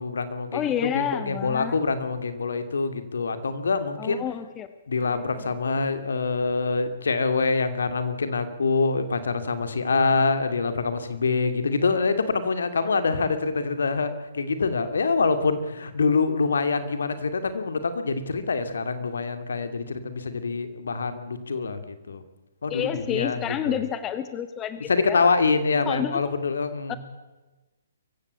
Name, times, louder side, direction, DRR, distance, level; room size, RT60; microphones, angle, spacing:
voice 1, 0.0-4.2 4.9-22.2 22.6-23.8 24.9-27.0, left 4 dB, 65° left, 10 dB, 2.5 m, -25 dB
voice 2, 0.5-1.8 4.0-4.7 5.0-5.5 22.7-25.3 25.8-26.2 26.9-27.0, left 9 dB, 20° left, 11 dB, 1.3 m, -30 dB
23.5 x 15.5 x 8.4 m, 1.1 s
figure-of-eight pair, 125°, 0 cm